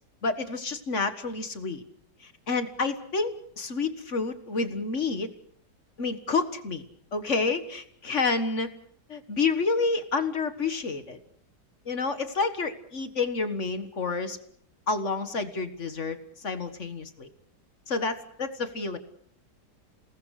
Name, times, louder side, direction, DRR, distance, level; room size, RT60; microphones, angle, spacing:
voice 1, 0.2-1.8 2.2-5.3 6.0-6.8 7.1-8.7 9.1-11.2 11.9-14.4 14.9-16.2 16.4-17.3 17.9-19.0, left 4 dB, 45° left, 10 dB, 1.9 m, -29 dB
29.0 x 19.0 x 6.5 m, 0.62 s
omnidirectional pair, 1.8 m